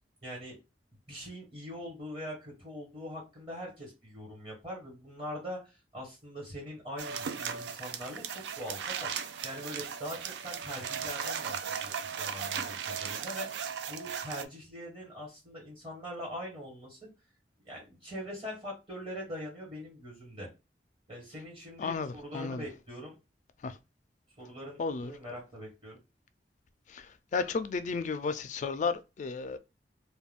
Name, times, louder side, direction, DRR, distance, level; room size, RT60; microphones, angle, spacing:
voice 1, 0.2-0.6 1.1-17.1 17.6-20.5 21.1-23.1 24.4-26.0, equal, 30° right, 1.4 m, -42 dB
sound 1, 7.0-14.4, right 7 dB, 75° right, 0.3 m, -37 dB
voice 2, 21.8-22.6 23.6-23.8 24.8-25.1 26.9-29.6, left 4 dB, 45° left, 0.3 m, -33 dB
2.4 x 2.2 x 3.3 m
head